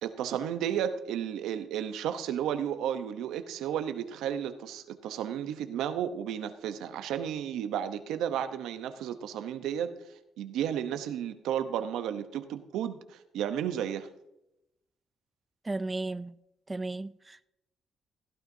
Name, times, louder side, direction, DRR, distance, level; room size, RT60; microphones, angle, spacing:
voice 1, 0.0-9.9 10.4-14.1, right 9 dB, 85° right, 0.8 m, -33 dB
voice 2, 15.6-16.3 16.7-17.5, right 2 dB, 20° right, 0.3 m, -34 dB
16.0 x 12.0 x 2.7 m
cardioid pair, 90°, 0 cm